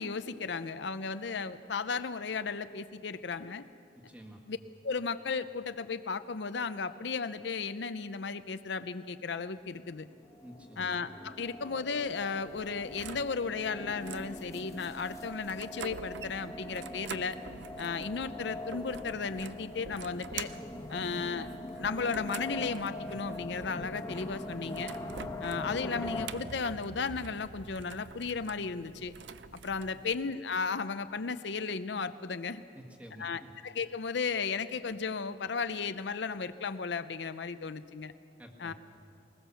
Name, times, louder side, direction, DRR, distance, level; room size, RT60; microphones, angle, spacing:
voice 1, 0.0-3.7 4.5-4.6 4.8-10.1 10.8-17.4 17.8-20.5 20.9-21.5 21.8-24.9 25.4-29.1 29.5-32.6 33.2-38.1 38.6-38.7, left 5 dB, 70° left, 11 dB, 0.6 m, -35 dB
voice 2, 4.1-4.4 10.4-11.0 29.9-30.1 32.7-33.5 38.4-38.7, equal, 5° right, 1 dB, 1.7 m, -50 dB
sound 1, 10.1-26.3, left 1 dB, 15° left, 1.3 m, -42 dB
sound 2, 12.5-30.2, right 5 dB, 70° right, 0.6 m, -47 dB
21.0 x 20.5 x 7.0 m, 2.5 s
head